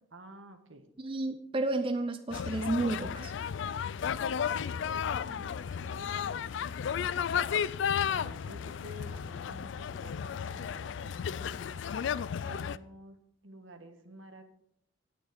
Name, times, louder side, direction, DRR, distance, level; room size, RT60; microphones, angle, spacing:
voice 1, 0.1-0.9 4.5-6.6 7.9-11.8 12.4-13.2 13.4-14.4, right 1 dB, 75° right, 7 dB, 1.4 m, -51 dB
voice 2, 1.0-3.3, right 2 dB, 25° right, 7 dB, 0.5 m, -31 dB
sound 1, 2.3-12.8, left 7 dB, 65° left, 0.3 m, -33 dB
9.5 x 8.8 x 5.1 m, 0.74 s
head